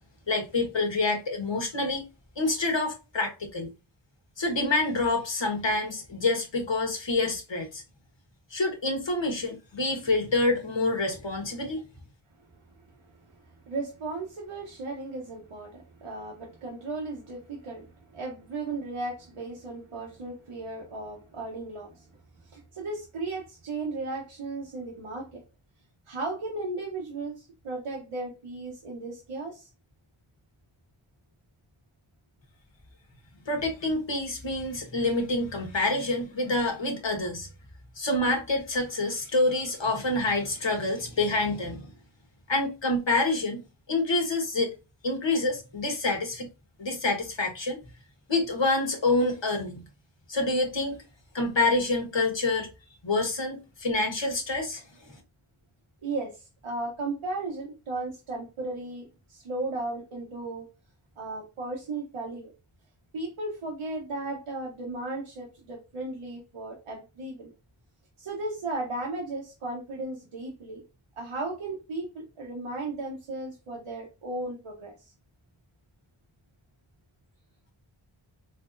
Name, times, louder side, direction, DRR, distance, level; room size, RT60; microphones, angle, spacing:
voice 1, 0.3-2.0 2.4-3.7 4.4-7.8 8.5-11.8 33.5-37.5 38.0-41.9 42.5-43.6 43.9-44.7 45.0-46.5 46.8-47.8 48.3-49.9 50.3-51.0 51.3-52.7 53.0-54.8, left 2 dB, 60° left, 1.4 m, -27 dB
voice 2, 13.4-22.1 22.5-25.4 26.1-29.7 56.0-60.7 61.2-62.5 63.1-67.5 68.2-70.8 71.2-75.1, right 2 dB, 90° right, 1.0 m, -35 dB
4.1 x 2.8 x 2.5 m
cardioid pair, 45°, 49 cm